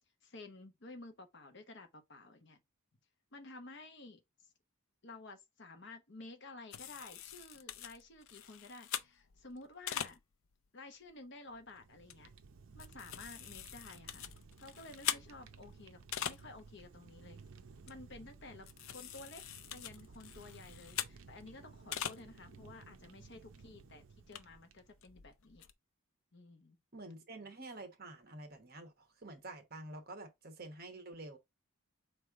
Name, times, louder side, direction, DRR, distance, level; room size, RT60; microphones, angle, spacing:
voice 1, 0.2-2.6 3.3-4.5 5.0-10.2 10.7-12.3 12.7-14.3 14.6-17.4 17.9-19.4 19.7-25.6 26.3-26.8, left 2 dB, 55° left, 0.9 m, -53 dB
sound 1, 6.7-10.5 11.1-11.2 11.5-11.7 12.1-12.2 12.5-16.7 17.0-17.2 17.5-17.6 17.9-18.2 18.6-21.4 21.7-22.2 22.6-22.7 23.1-23.2 23.5-23.6 24.1-25.7, left 10 dB, 70° left, 0.5 m, -43 dB
Fire, 11.5-25.1, right 4 dB, 70° right, 0.6 m, -57 dB
voice 2, 26.9-31.4, right 2 dB, 45° right, 1.1 m, -49 dB
4.5 x 3.3 x 3.6 m
head